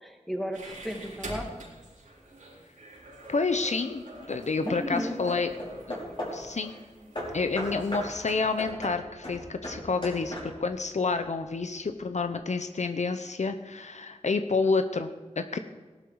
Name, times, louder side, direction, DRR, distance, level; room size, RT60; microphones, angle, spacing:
voice 1, 0.0-1.5 4.6-5.2, equal, ahead, 3 dB, 2.2 m, -34 dB
sound 1, 0.5-8.7, right 1 dB, 90° right, 4.1 m, -46 dB
Hammer / Wood, 2.9-3.4 4.1-6.5 7.1-10.8, equal, 40° left, 5.0 m, -38 dB
voice 2, 3.3-5.5 5.9-6.0 6.3-6.7 7.3-15.6, left 4 dB, 65° left, 8 dB, 0.8 m, -29 dB
17.5 x 12.0 x 4.8 m, 1.3 s
wide cardioid pair, 75°, 13 cm